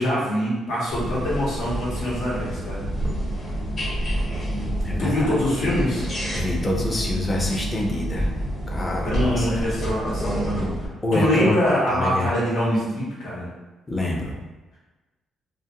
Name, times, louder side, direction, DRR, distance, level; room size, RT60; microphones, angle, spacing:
voice 1, 0.0-2.8 5.0-6.0 9.1-13.5, equal, 85° left, -7 dB, 1.0 m, -24 dB
Light switch bathroom door, 0.9-10.9, equal, 40° left, 0.9 m, -28 dB
voice 2, 4.5-5.3 6.3-8.3 8.7-9.6 11.0-11.5 11.9-12.3 13.9-14.4, left 2 dB, 20° left, -1 dB, 0.5 m, -26 dB
2.4 x 2.1 x 2.8 m, 1.2 s
cardioid pair, 90°, 0 cm